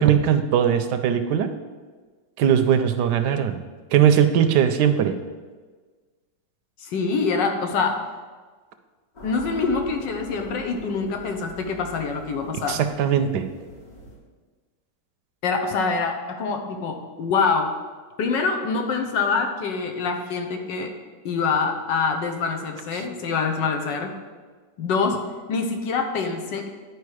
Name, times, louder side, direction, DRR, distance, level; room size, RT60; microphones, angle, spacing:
voice 1, 0.0-1.5 2.4-3.6 3.9-5.1 12.7-13.5 22.9-23.0, right 8 dB, 75° right, 9 dB, 1.1 m, -20 dB
voice 2, 6.8-8.0 9.2-12.8 15.4-17.7 18.2-20.9 21.2-24.1 24.8-26.7, left 4 dB, 80° left, 4 dB, 1.6 m, -25 dB
sound 1, 9.1-14.2, equal, 55° left, 2.4 m, -42 dB
10.5 x 4.9 x 4.8 m, 1.4 s
omnidirectional pair, 1.9 m